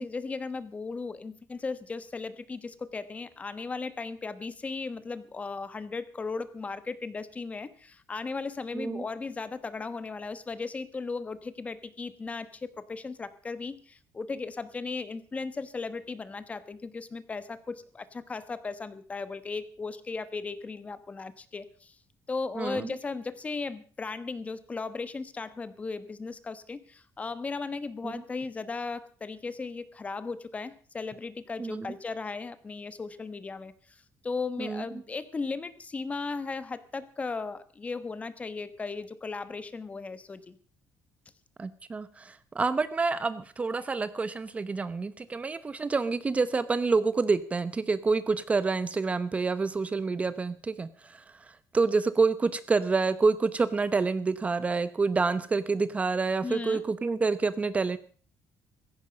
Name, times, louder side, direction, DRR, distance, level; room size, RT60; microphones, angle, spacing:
voice 1, 0.0-22.0 22.3-40.6 56.4-56.8, left 4 dB, 20° left, 14 dB, 1.1 m, -36 dB
voice 2, 8.7-9.0 22.6-23.0 28.0-28.2 31.6-31.9 34.6-34.8 41.6-58.0, right 4 dB, 20° right, 14 dB, 0.8 m, -28 dB
16.5 x 15.0 x 5.2 m, 0.41 s
cardioid pair, 135°, 6 cm